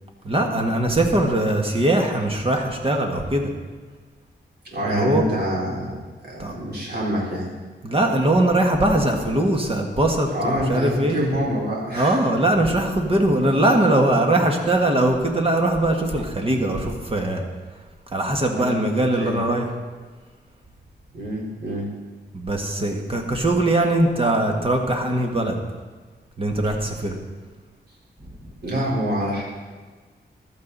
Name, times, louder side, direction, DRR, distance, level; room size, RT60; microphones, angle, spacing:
voice 1, 0.2-3.5 4.9-5.2 6.4-6.6 7.8-11.2 11.9-17.4 18.1-19.7 22.3-25.6 26.4-27.2 28.2-28.5, right 1 dB, 30° right, 2 dB, 1.7 m, -21 dB
voice 2, 4.6-7.5 10.3-12.2 18.5-18.7 19.2-19.4 21.1-21.9 28.6-29.4, equal, 60° right, -4 dB, 4.1 m, -26 dB
15.0 x 12.0 x 4.1 m, 1.4 s
wide cardioid pair, 145°, 18 cm